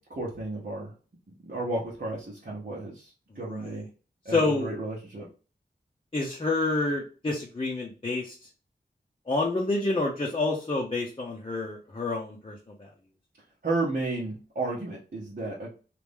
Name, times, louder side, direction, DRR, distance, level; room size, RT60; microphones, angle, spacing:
voice 1, 0.1-0.9 1.4-3.9 4.2-5.3 13.6-15.7, right 2 dB, 55° right, -5 dB, 1.0 m, -33 dB
voice 2, 3.5-3.8 4.3-4.7 6.1-8.4 9.3-12.9, left 2 dB, 30° left, -2 dB, 0.7 m, -28 dB
3.1 x 2.5 x 3.4 m, 0.37 s
wide cardioid pair, 75°, 19 cm